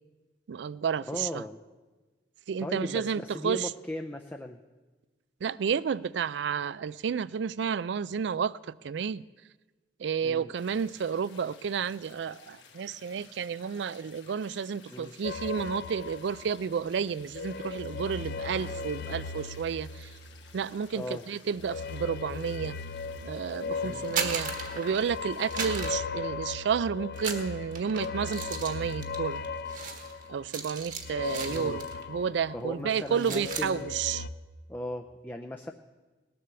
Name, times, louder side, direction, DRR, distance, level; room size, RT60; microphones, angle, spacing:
voice 1, 0.5-1.4 2.5-3.7 5.4-9.2 10.0-20.1 20.5-22.8 23.2-29.4 30.3-34.3, right 6 dB, 75° right, 0.4 m, -31 dB
voice 2, 1.1-1.6 2.6-4.6 10.2-10.5 14.9-15.1 20.9-21.2 23.8-24.2 31.5-31.8 32.5-33.9 34.7-35.7, left 1 dB, 10° left, 0.5 m, -37 dB
sound 1, 10.6-25.6, left 6 dB, 85° left, 1.6 m, -55 dB
sound 2, 15.2-16.9 17.2-20.7 21.6-32.9 33.3-34.3, left 4 dB, 60° left, 0.5 m, -37 dB
sound 3, 23.9-25.2 25.5-26.8 27.1-32.1 32.4-32.6 32.9-33.7, right 6 dB, 45° right, 1.4 m, -37 dB
19.0 x 7.7 x 6.9 m
head